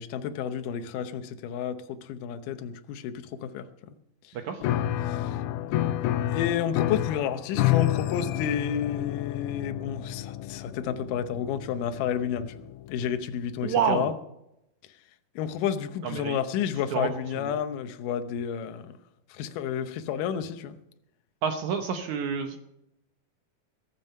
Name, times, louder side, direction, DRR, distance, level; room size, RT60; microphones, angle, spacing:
voice 1, 0.0-3.7 4.2-4.4 5.0-5.4 6.3-14.1 15.4-19.0 19.3-20.8, left 8 dB, 70° left, 9 dB, 2.3 m, -31 dB
Piano, 4.6-13.1, left 13 dB, 90° left, 1.8 m, -30 dB
voice 2, 13.6-14.1 16.0-16.4 16.9-17.1 17.4-17.5 21.4-22.6, right 7 dB, 70° right, 5 dB, 2.0 m, -28 dB
22.0 x 7.5 x 5.5 m, 0.83 s
omnidirectional pair, 4.2 m